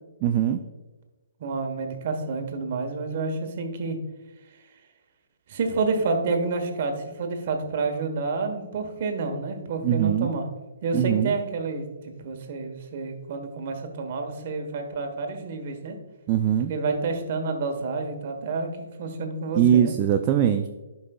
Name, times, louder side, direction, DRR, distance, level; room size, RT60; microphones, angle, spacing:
voice 1, 0.2-0.6 9.8-10.3 10.9-11.3 16.3-16.7 19.5-20.7, right 10 dB, 30° right, 6 dB, 0.4 m, -21 dB
voice 2, 1.4-4.0 5.5-10.5 10.8-16.0 16.7-19.9, right 4 dB, 50° right, 5 dB, 1.2 m, -29 dB
11.0 x 5.4 x 2.3 m, 1.2 s
figure-of-eight pair, 135°, 0 cm